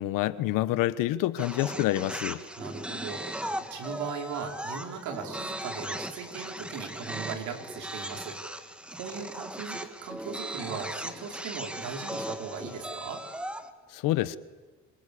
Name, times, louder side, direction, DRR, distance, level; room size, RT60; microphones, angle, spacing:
voice 1, 0.0-2.4 13.9-14.4, left 15 dB, 80° left, 1.2 m, -27 dB
sound 1, 1.4-13.7, right 1 dB, 5° right, 1.7 m, -38 dB
voice 2, 2.6-8.6 8.9-13.2, right 6 dB, 65° right, 5.0 m, -38 dB
26.5 x 26.0 x 8.6 m
cardioid pair, 145°, 32 cm